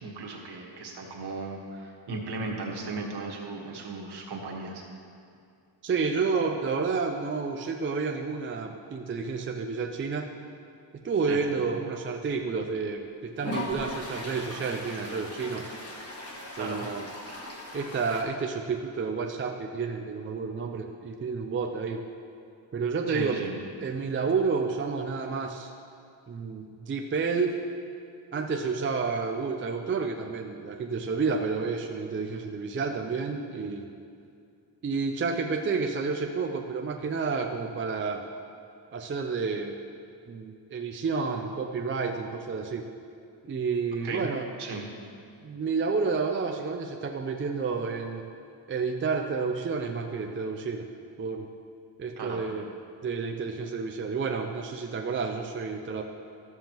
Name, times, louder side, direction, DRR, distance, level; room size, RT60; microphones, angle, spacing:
voice 1, 0.0-4.8 11.3-11.4 16.6-16.8 23.1-23.5 44.0-44.3 44.6-44.9 52.2-52.4, right 3 dB, 55° right, -1 dB, 1.5 m, -36 dB
voice 2, 5.8-10.3 11.0-15.7 16.6-17.1 17.7-22.0 22.7-23.4 23.8-25.7 26.3-27.6 28.3-33.9 34.8-38.2 38.9-39.8 40.3-42.9 43.4-44.5 45.4-48.3 48.7-50.9 51.2-51.5 52.0-52.7 53.0-56.0, right 4 dB, 30° right, 2 dB, 0.4 m, -30 dB
Toilet flush, 12.4-12.5 13.4-18.2, left 1 dB, 30° left, 1.4 m, -38 dB
13.0 x 7.3 x 3.0 m, 2.5 s
cardioid pair, 115°, 46 cm